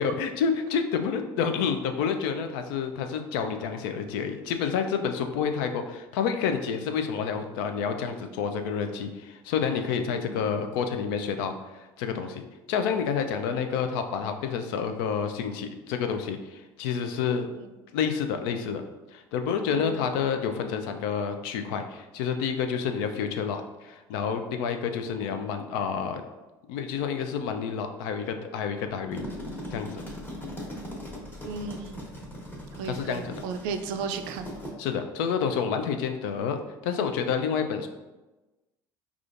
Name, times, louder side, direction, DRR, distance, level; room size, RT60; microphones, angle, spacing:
voice 1, 0.0-17.5 17.9-18.8 19.1-26.2 26.7-29.2 29.7-30.0 32.8-33.4 34.8-36.6 36.8-37.9, left 6 dB, 75° left, 7 dB, 0.4 m, -29 dB
voice 2, 10.2-10.6 17.6-17.7 19.7-20.2 31.4-32.1 32.7-34.5, right 5 dB, 75° right, 7 dB, 0.4 m, -35 dB
sound 1, 28.9-34.7, equal, 15° left, 1.1 m, -39 dB
4.9 x 2.4 x 2.5 m, 1.1 s
hypercardioid pair, 80°, 12 cm